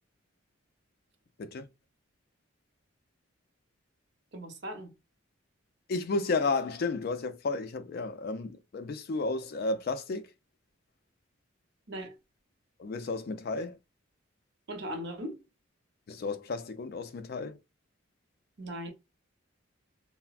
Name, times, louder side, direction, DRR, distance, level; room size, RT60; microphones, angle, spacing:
voice 1, 4.3-4.9 11.9-12.1 14.7-15.4 18.6-18.9, equal, 55° right, 0.7 m, -38 dB
voice 2, 5.9-10.3 12.8-13.8 16.1-17.6, left 3 dB, 50° left, 0.3 m, -32 dB
3.2 x 2.0 x 2.4 m
head